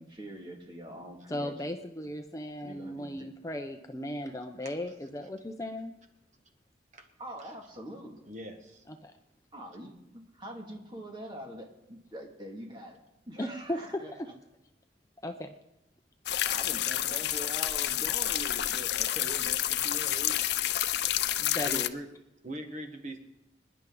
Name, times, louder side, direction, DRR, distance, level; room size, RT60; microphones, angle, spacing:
voice 1, 0.0-1.6 2.6-3.1 7.2-8.3 9.5-13.0 13.3-14.1 16.5-20.3, right 1 dB, 25° right, 1 dB, 2.2 m, -44 dB
voice 2, 1.3-5.9 8.9-9.1 13.4-14.3 15.2-15.5 21.4-22.0, left 1 dB, 20° left, 5 dB, 0.7 m, -36 dB
voice 3, 8.3-8.9 17.9-18.1 18.3-18.5 21.6-22.1 22.4-23.2, right 1 dB, 40° right, 5 dB, 1.3 m, -42 dB
sound 1, 16.3-21.9, left 12 dB, 70° left, 0.5 m, -29 dB
26.0 x 10.5 x 3.9 m, 0.89 s
head